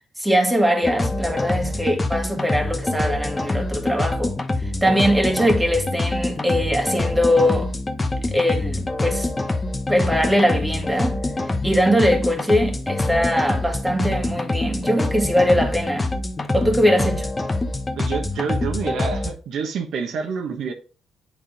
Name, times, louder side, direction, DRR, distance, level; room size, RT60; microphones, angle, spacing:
voice 1, 0.2-7.7 8.3-9.3 9.9-11.2 11.6-16.1 16.5-17.3, equal, 5° right, 1.9 m, -21 dB
sound 1, 0.8-19.3, left 2 dB, 20° left, 1.1 m, -25 dB
voice 2, 18.0-20.7, right 6 dB, 75° right, 1.3 m, -28 dB
8.6 x 3.7 x 5.0 m
cardioid pair, 90°, 0 cm